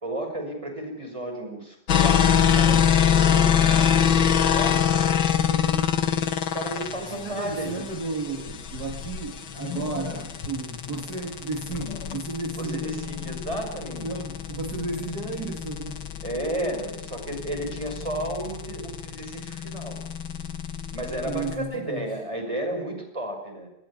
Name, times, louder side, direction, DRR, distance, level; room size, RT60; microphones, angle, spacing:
voice 1, 0.0-1.8 2.0-4.0 4.5-7.8 12.5-14.1 16.2-20.0 20.9-23.7, right 1 dB, 15° right, 5 dB, 5.5 m, -33 dB
sound 1, 1.9-21.5, left 8 dB, 65° left, 2.1 m, -25 dB
Wind, 6.7-12.2, left 8 dB, 85° left, 2.6 m, -40 dB
voice 2, 7.0-12.9 14.0-16.0 21.2-22.1, right 3 dB, 50° right, 2 dB, 2.7 m, -33 dB
21.0 x 17.5 x 9.9 m, 0.82 s
omnidirectional pair, 2.3 m